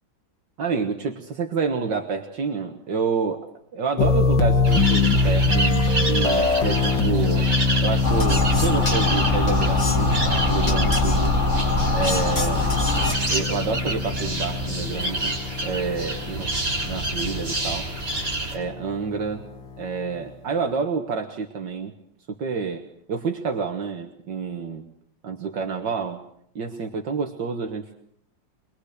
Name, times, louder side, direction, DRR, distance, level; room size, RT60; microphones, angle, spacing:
voice 1, 0.6-3.5 3.7-7.5 7.8-11.3 11.9-12.8 13.3-15.4 15.6-16.5 16.8-17.9 18.5-19.4 19.8-21.9 22.3-22.8 23.1-24.8 25.2-26.2 26.6-27.9, right 5 dB, 70° right, 4 dB, 2.1 m, -28 dB
sound 1, 4.0-19.9, left 3 dB, 75° left, 2.4 m, -24 dB
sound 2, 4.6-18.6, right 2 dB, 45° right, 5.8 m, -29 dB
sound 3, 8.0-13.1, left 2 dB, 40° left, 2.5 m, -23 dB
24.5 x 21.0 x 6.6 m, 0.68 s
omnidirectional pair, 2.1 m